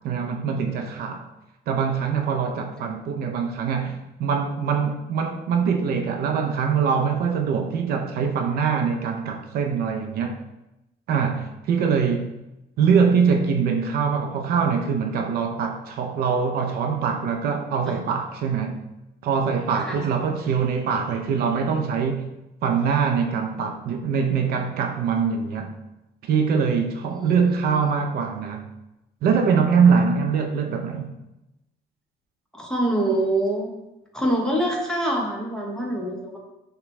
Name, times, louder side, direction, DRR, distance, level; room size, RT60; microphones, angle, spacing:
voice 1, 0.0-1.3 1.7-10.4 11.1-12.3 12.8-18.8 19.2-22.3 22.6-25.7 26.2-28.6 29.2-31.1, right 6 dB, 65° right, 0.5 m, -23 dB
voice 2, 32.5-33.7 34.1-36.4, right 1 dB, 5° left, 0.9 m, -25 dB
5.9 x 2.2 x 3.1 m
cardioid pair, 110°, 17 cm